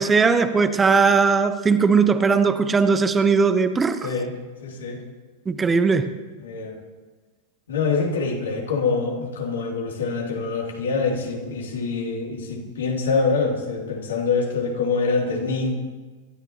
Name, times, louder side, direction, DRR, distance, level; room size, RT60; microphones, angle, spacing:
voice 1, 0.0-4.1 5.5-6.1, right 5 dB, 15° right, 10 dB, 1.0 m, -19 dB
voice 2, 4.6-5.0 6.4-6.8 7.7-15.7, left 4 dB, 65° left, 0 dB, 2.8 m, -25 dB
27.0 x 13.0 x 2.9 m, 1.3 s
figure-of-eight pair, 90°, 0 cm